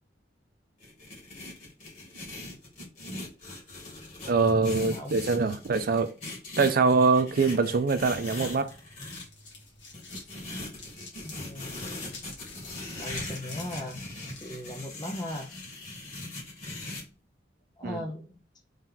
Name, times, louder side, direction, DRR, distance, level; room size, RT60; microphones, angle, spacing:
sound 1, 0.8-9.2 9.9-17.0, left 2 dB, 45° left, 1.7 m, -40 dB
voice 1, 4.3-6.1 6.6-8.7 17.8-18.0, right 4 dB, 50° right, 0.5 m, -24 dB
voice 2, 4.8-5.2 11.2-12.2 13.0-14.0 14.4-15.5 17.8-18.2, left 1 dB, 20° left, 0.5 m, -38 dB
sound 2, 7.9-14.5, left 3 dB, 75° left, 1.6 m, -49 dB
3.2 x 2.9 x 3.8 m
head